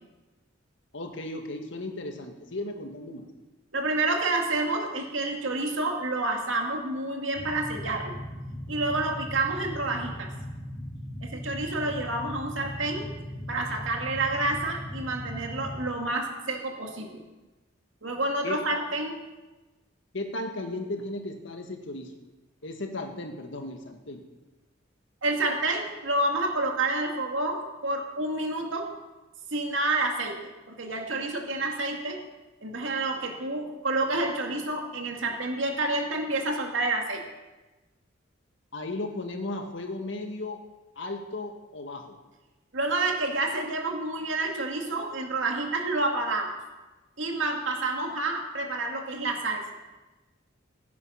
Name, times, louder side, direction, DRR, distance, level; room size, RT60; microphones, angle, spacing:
voice 1, 0.9-3.3 18.4-18.6 20.1-22.1 22.6-24.2 38.7-40.6 40.9-42.2, left 2 dB, 70° left, 4 dB, 1.7 m, -35 dB
voice 2, 3.7-8.2 8.7-10.3 11.2-13.1 13.5-17.2 18.0-19.2 25.2-28.9 29.5-32.2 32.6-37.2 42.7-46.6 47.2-49.6, right 2 dB, 75° right, 2 dB, 2.2 m, -29 dB
sound 1, 7.3-15.9, equal, 50° left, 2.3 m, -38 dB
16.5 x 9.5 x 5.7 m, 1.2 s
head